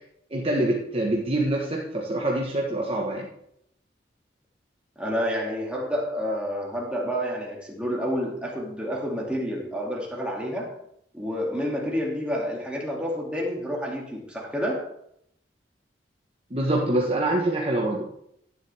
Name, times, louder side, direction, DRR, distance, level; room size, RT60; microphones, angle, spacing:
voice 1, 0.3-3.3 16.5-18.1, right 1 dB, 35° right, -2 dB, 1.4 m, -25 dB
voice 2, 5.0-10.7 11.1-14.9, equal, 5° right, -3 dB, 2.5 m, -29 dB
11.0 x 9.7 x 3.5 m, 0.73 s
head